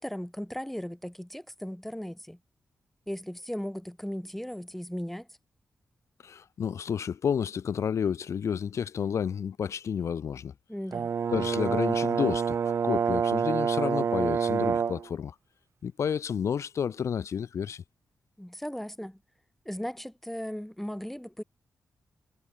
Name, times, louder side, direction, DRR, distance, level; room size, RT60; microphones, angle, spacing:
voice 1, 0.0-2.4 3.1-5.3 10.7-11.1 18.4-19.2 19.6-21.4, equal, 5° left, 4.6 m, -37 dB
voice 2, 6.2-10.5 11.3-15.3 15.8-17.8, left 7 dB, 70° left, 1.3 m, -30 dB
Brass instrument, 10.9-15.1, right 6 dB, 55° right, 0.4 m, -27 dB
cardioid pair, 75°, 5 cm